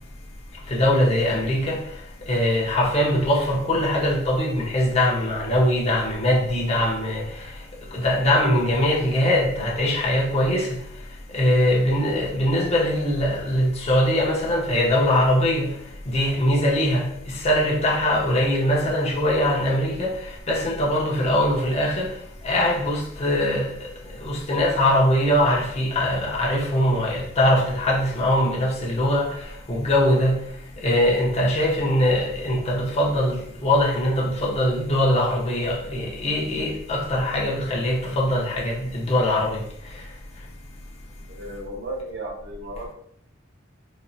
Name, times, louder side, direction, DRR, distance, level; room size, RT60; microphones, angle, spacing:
voice 1, 0.7-1.9 2.3-7.5 7.9-10.8 11.3-15.8 16.1-22.2 22.4-30.4 30.8-40.0, left 1 dB, 30° left, 0.7 m, -22 dB
voice 2, 41.3-42.9, right 1 dB, 60° right, 1.0 m, -34 dB
4.2 x 2.7 x 2.4 m
head